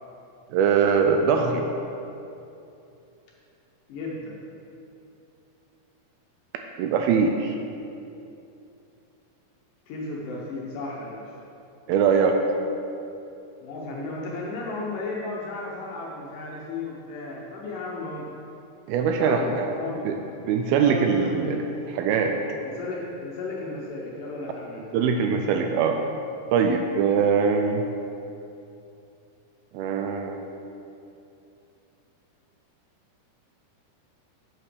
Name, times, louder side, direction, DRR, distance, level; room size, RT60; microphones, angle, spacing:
voice 1, 0.5-1.6 6.8-7.6 11.9-12.4 18.9-19.7 20.0-20.1 20.4-21.6 22.0-22.4 24.9-25.9 26.5-27.8 29.7-30.4, right 6 dB, 80° right, 4 dB, 2.3 m, -22 dB
voice 2, 3.9-4.4 9.9-11.4 13.6-18.3 19.2-20.1 20.7-21.6 22.6-24.9, left 2 dB, 70° left, -3 dB, 2.2 m, -34 dB
8.3 x 7.3 x 5.0 m, 2.7 s
omnidirectional pair, 4.6 m